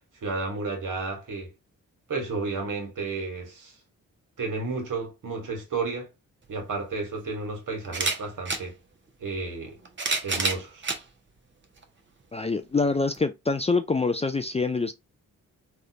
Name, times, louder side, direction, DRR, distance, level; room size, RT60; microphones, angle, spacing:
voice 1, 0.2-1.5 2.1-3.7 4.4-6.1 6.5-8.7 9.2-9.8 10.2-10.9, right 3 dB, 60° right, 1.5 m, -32 dB
sound 1, 6.4-6.5 7.8-8.6 9.6-11.0 11.8-11.9 13.1-13.2, right 3 dB, 35° right, 0.9 m, -28 dB
voice 2, 12.3-14.9, left 3 dB, 20° left, 0.4 m, -25 dB
3.4 x 2.4 x 2.7 m
supercardioid pair, 45°, 34 cm